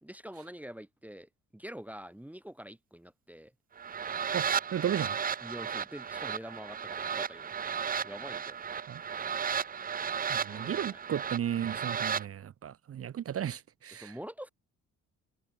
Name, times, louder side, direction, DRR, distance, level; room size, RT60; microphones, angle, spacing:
voice 1, 0.0-3.5 5.4-7.5 8.0-8.6 10.5-11.0 13.9-14.5, equal, 5° right, 1.4 m, -45 dB
sound 1, 3.8-12.2, right 7 dB, 30° right, 0.6 m, -34 dB
voice 2, 4.3-5.2 8.9-9.0 10.3-14.2, right 10 dB, 50° right, 0.9 m, -34 dB
cardioid pair, 90°, 30 cm